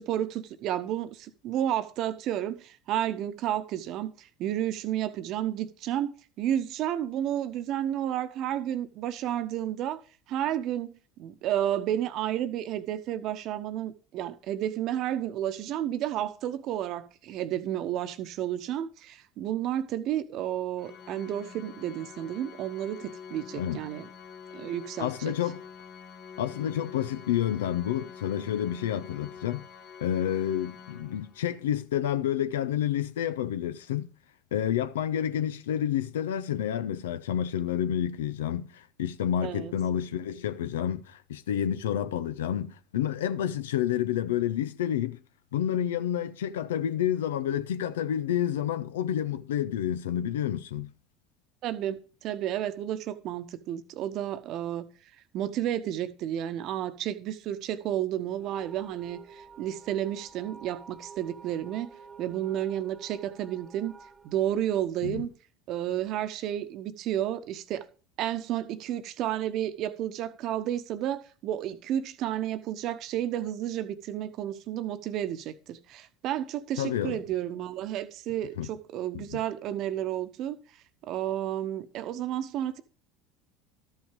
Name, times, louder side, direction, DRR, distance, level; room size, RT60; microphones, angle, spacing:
voice 1, 0.0-10.0 10.3-24.1 24.5-25.1 39.4-39.7 51.6-54.9 55.3-64.0 64.2-65.3 65.7-67.8 68.2-80.6 81.0-82.8, right 11 dB, 50° right, 1.0 m, -31 dB
Organ, 20.8-31.6, left 7 dB, 55° left, 1.5 m, -47 dB
voice 2, 25.0-25.6 26.4-29.6 30.0-34.1 34.5-45.2 45.5-50.9 65.0-65.3 76.8-77.2 78.6-78.7 79.1-79.4, left 10 dB, 75° left, 0.6 m, -29 dB
sound 1, 58.4-65.3, right 5 dB, 15° right, 1.0 m, -50 dB
13.0 x 5.8 x 5.2 m
figure-of-eight pair, 70°, 0 cm